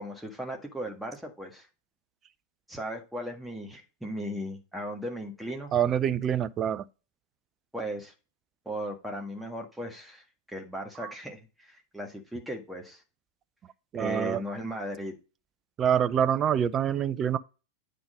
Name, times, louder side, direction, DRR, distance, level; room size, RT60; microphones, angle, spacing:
voice 1, 0.0-1.7 2.7-5.7 7.7-8.1 8.6-13.0 14.0-15.1, equal, 5° right, 1.6 m, -37 dB
voice 2, 5.7-6.8 11.0-11.1 13.9-14.4 15.8-17.4, right 9 dB, 30° right, 0.5 m, -26 dB
8.7 x 3.8 x 4.9 m
figure-of-eight pair, 90°, 0 cm